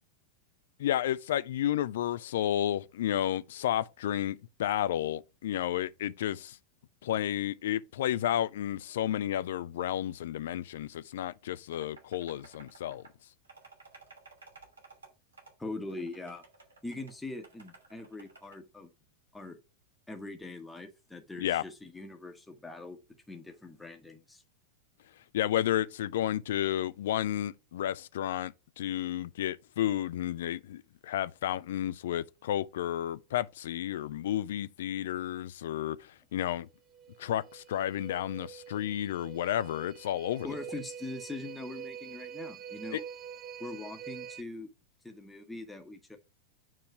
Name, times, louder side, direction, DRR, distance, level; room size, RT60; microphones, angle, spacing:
voice 1, 0.8-6.6 7.0-13.0 21.4-21.6 25.3-36.7 37.2-40.5 42.9-43.0, left 11 dB, 60° left, 0.4 m, -32 dB
sound 1, 11.7-13.1 13.5-15.1 15.3-15.5 15.9-18.6, right 3 dB, 70° right, 2.6 m, -55 dB
voice 2, 15.6-16.4 16.8-18.9 19.3-19.6 20.1-23.0 23.3-24.4 40.4-43.0 43.6-44.7 45.0-46.2, left 2 dB, 5° left, 1.1 m, -42 dB
sound 2, 36.9-44.4, right 8 dB, 25° right, 0.7 m, -45 dB
9.0 x 3.1 x 5.9 m
figure-of-eight pair, 90°, 0 cm